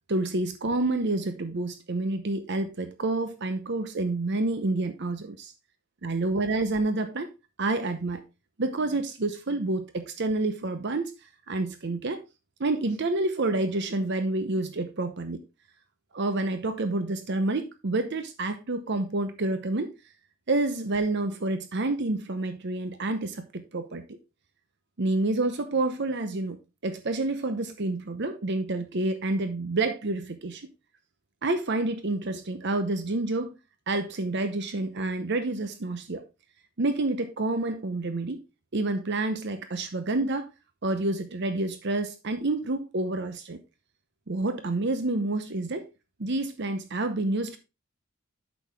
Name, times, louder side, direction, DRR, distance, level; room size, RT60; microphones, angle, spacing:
voice 1, 0.1-5.5 6.0-7.3 7.6-8.2 8.6-12.2 12.6-15.4 16.1-19.9 20.5-24.2 25.0-30.7 31.4-33.5 33.9-36.2 36.8-38.4 38.7-40.5 40.8-43.6 44.3-45.8 46.2-47.6, right 2 dB, 55° right, 0.8 m, -28 dB
8.5 x 6.3 x 3.4 m
head